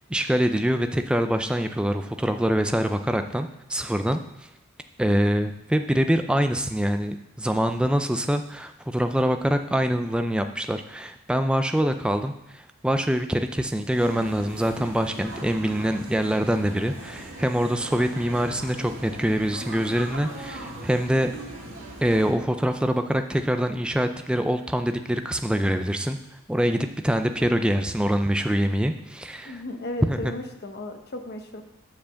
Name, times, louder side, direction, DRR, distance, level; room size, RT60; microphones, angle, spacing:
voice 1, 0.1-4.2 5.0-21.3 22.0-26.2 26.5-29.6 30.1-30.3, equal, 5° right, 7 dB, 0.3 m, -24 dB
sound 1, 13.9-22.3, right 1 dB, 55° right, 1.7 m, -39 dB
voice 2, 29.4-31.6, left 1 dB, 45° left, 5 dB, 0.8 m, -35 dB
7.6 x 4.6 x 6.9 m, 0.84 s
head